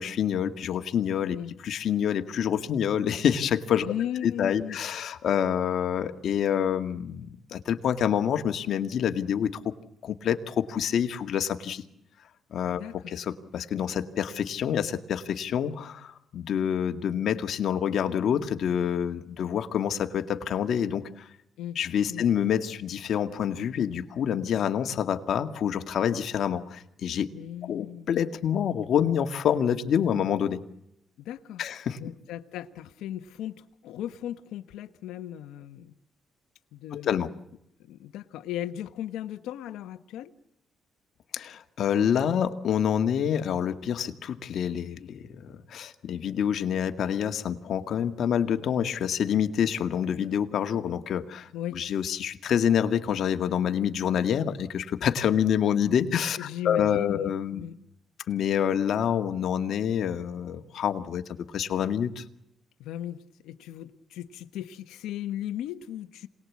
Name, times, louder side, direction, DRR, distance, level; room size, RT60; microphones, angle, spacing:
voice 1, 0.0-1.4 1.6-3.9 4.2-9.7 10.0-11.8 12.5-21.3 21.8-27.3 27.7-30.6 31.6-32.0 36.9-37.3 41.3-57.6 58.3-61.2 61.5-62.2, left 8 dB, 65° left, 8 dB, 1.9 m, -27 dB
voice 2, 3.8-4.8 12.7-12.9 21.6-21.8 22.1-22.3 27.3-28.2 31.2-31.6 31.9-35.9 36.7-37.3 37.9-40.3 51.5-51.8 56.4-57.8 62.8-66.3, left 11 dB, 90° left, 9 dB, 1.1 m, -37 dB
27.0 x 20.0 x 8.5 m, 0.80 s
cardioid pair, 90°, 0 cm